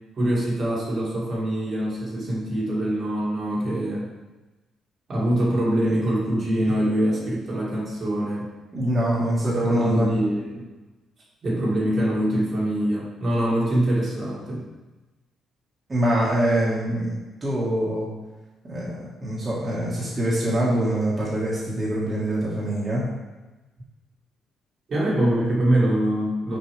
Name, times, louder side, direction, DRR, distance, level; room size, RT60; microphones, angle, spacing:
voice 1, 0.2-4.1 5.1-8.5 9.6-10.7 11.4-14.6 24.9-26.6, right 1 dB, 50° right, -5 dB, 2.0 m, -24 dB
voice 2, 8.7-10.1 15.9-18.1 18.6-23.0, right 1 dB, 30° right, -7 dB, 1.7 m, -24 dB
6.4 x 4.4 x 3.4 m, 1.1 s
cardioid pair, 90°, 0 cm